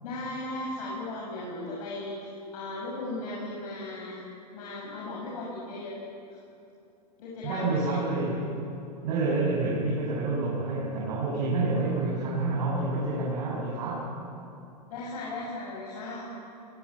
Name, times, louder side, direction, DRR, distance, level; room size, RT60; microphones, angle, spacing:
voice 1, 0.0-4.2 4.5-6.0 7.2-8.3 14.9-16.2, left 2 dB, 60° left, -4 dB, 6.8 m, -37 dB
voice 2, 7.4-8.5 9.0-14.1, right 3 dB, 60° right, -4 dB, 7.1 m, -28 dB
27.0 x 21.5 x 8.8 m, 2.8 s
hypercardioid pair, 105°, 21 cm